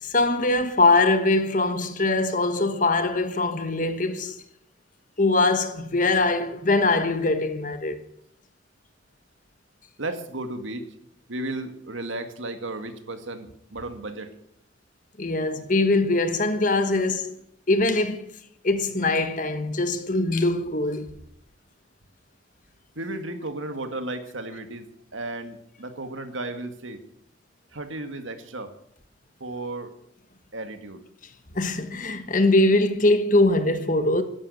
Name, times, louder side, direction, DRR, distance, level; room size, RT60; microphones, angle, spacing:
voice 1, 0.0-4.4 5.2-8.0 15.2-17.3 17.7-18.3 18.6-21.1 31.5-34.2, left 2 dB, 40° left, 1.2 m, -22 dB
voice 2, 10.0-10.9 11.3-14.3 23.0-27.0 27.7-28.7 29.4-29.9 30.5-31.0, right 2 dB, 85° right, 2.0 m, -34 dB
14.0 x 10.5 x 8.4 m
head